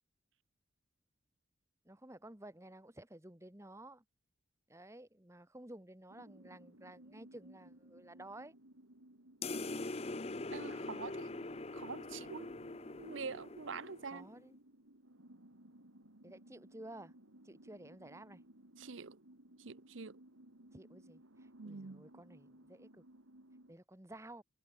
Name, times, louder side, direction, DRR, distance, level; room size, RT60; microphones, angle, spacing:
voice 1, 1.8-4.0 4.7-8.5 14.1-14.6 16.2-17.1 17.4-18.4 20.7-23.0 23.7-24.4, right 1 dB, 15° right, 1.4 m, -53 dB
sound 1, 6.1-23.7, right 1 dB, 90° right, 4.4 m, -60 dB
sound 2, 9.4-14.3, left 2 dB, 30° left, 0.7 m, -43 dB
voice 2, 10.5-11.3 11.7-12.5 13.0-14.3 18.8-19.2 19.6-20.2 21.6-22.1, right 5 dB, 70° right, 0.8 m, -45 dB
head